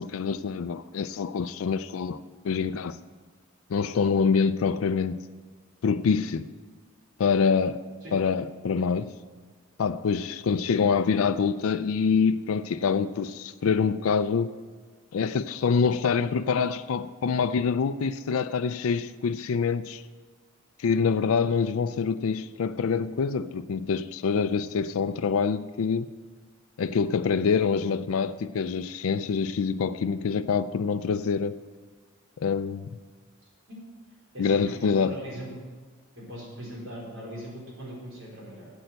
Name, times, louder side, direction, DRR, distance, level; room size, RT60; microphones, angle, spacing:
voice 1, 0.0-3.0 3.7-5.2 5.8-6.5 7.2-7.9 8.1-9.1 9.8-14.5 15.1-20.0 20.8-26.1 26.8-31.6 32.4-32.9 34.4-35.1, left 5 dB, 90° left, 0.4 m, -25 dB
voice 2, 34.3-35.6 36.2-38.7, equal, 65° right, 4.2 m, -40 dB
8.6 x 7.9 x 7.9 m
head